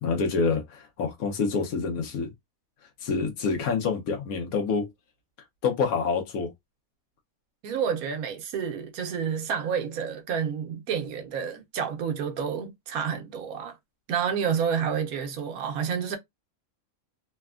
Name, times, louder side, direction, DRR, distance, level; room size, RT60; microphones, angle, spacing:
voice 1, 0.0-2.3 3.0-4.9 5.6-6.5, left 5 dB, 80° left, 1.3 m, -27 dB
voice 2, 7.6-13.8 14.1-16.2, right 7 dB, 80° right, 1.2 m, -29 dB
3.3 x 2.2 x 2.3 m
omnidirectional pair, 1.5 m